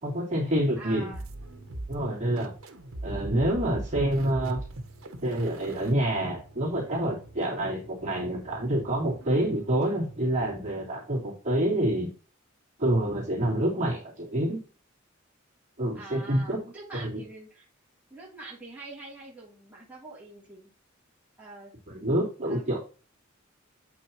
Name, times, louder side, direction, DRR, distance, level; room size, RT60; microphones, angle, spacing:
voice 1, 0.0-1.1 1.9-2.5 3.0-4.6 5.2-12.1 12.8-14.6 15.8-16.6 16.9-17.2 21.9-22.8, right 1 dB, 35° right, -5 dB, 3.1 m, -27 dB
voice 2, 0.8-1.3 15.9-17.7 18.1-20.7 21.4-21.7 22.4-22.8, right 2 dB, 10° right, -7 dB, 2.9 m, -45 dB
sound 1, 1.1-10.8, right 1 dB, 90° right, 0.9 m, -42 dB
8.0 x 6.1 x 3.0 m, 0.35 s
head